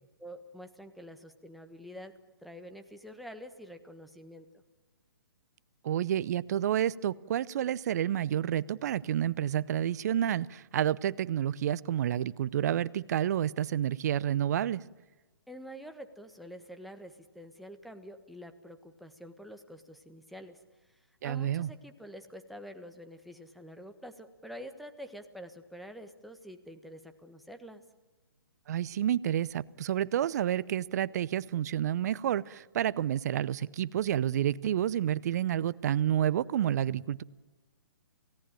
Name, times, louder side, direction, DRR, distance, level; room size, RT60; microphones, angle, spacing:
voice 1, 0.2-2.1 2.4-4.6 15.5-20.6 20.9-27.8, equal, ahead, 8 dB, 1.4 m, -47 dB
voice 2, 5.8-14.8 21.2-21.7 28.7-37.2, right 10 dB, 45° right, 20 dB, 0.7 m, -29 dB
28.5 x 17.5 x 9.0 m, 1.2 s
figure-of-eight pair, 130°, 12 cm